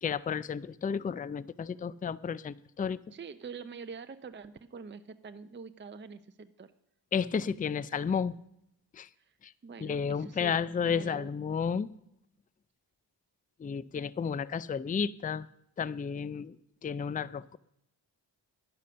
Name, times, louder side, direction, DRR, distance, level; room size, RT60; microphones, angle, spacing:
voice 1, 0.0-3.0 7.1-8.3 8.9-9.1 9.4-9.5 9.8-11.9 13.6-15.5 15.8-16.6 16.8-17.6, left 6 dB, 20° left, 19 dB, 0.4 m, -32 dB
voice 2, 3.1-6.7 9.2-9.3 9.6-11.3, right 5 dB, 25° right, 10 dB, 0.6 m, -45 dB
10.5 x 10.0 x 6.7 m, 0.78 s
cardioid pair, 55°, 43 cm